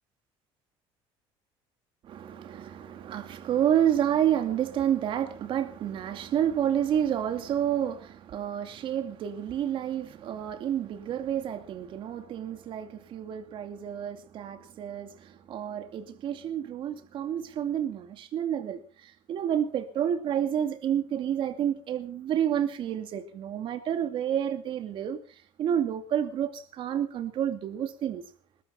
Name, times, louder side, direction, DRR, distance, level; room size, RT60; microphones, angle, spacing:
voice 1, 2.1-25.2 25.6-28.2, right 10 dB, 50° right, 2.5 m, -29 dB
21.5 x 12.0 x 5.6 m
cardioid pair, 130°, 11 cm